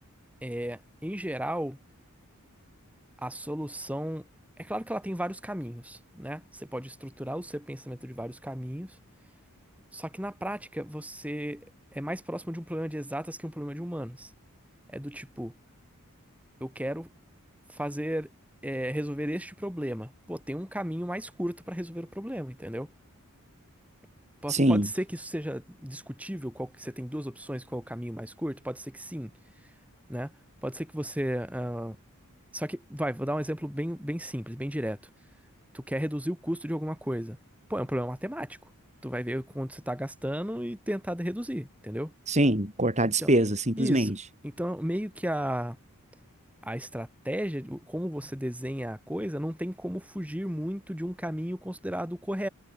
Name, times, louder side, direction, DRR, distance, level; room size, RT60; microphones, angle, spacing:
voice 1, 0.4-1.8 3.2-4.3 4.6-9.0 9.9-11.7 11.9-14.3 14.9-15.5 16.6-17.1 17.7-18.3 18.6-22.9 24.4-29.3 30.1-30.3 30.6-32.0 32.5-35.0 35.7-37.4 37.7-38.6 39.0-42.1 43.0-43.3 43.8-44.1 44.4-45.8 46.6-52.5, equal, 5° right, 6.3 m, -34 dB
voice 2, 24.5-24.9 42.3-44.1, right 1 dB, 30° right, 5.7 m, -23 dB
head